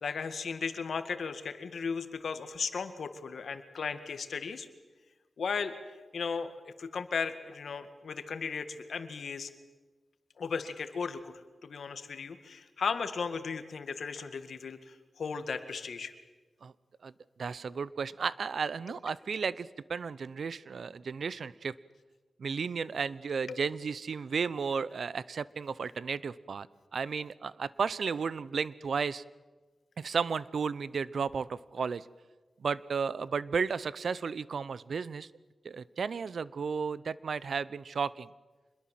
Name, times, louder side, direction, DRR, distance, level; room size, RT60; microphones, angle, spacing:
voice 1, 0.0-4.7 5.4-5.7 6.1-9.5 10.4-11.3 11.6-16.1 23.5-23.6, left 5 dB, 80° left, 9 dB, 1.9 m, -36 dB
voice 2, 17.4-21.7 22.4-26.7 26.9-29.2 30.0-32.1 32.6-35.3 35.6-38.3, right 5 dB, 75° right, 19 dB, 0.7 m, -33 dB
26.5 x 21.5 x 7.6 m, 1.3 s
cardioid pair, 70°, 0 cm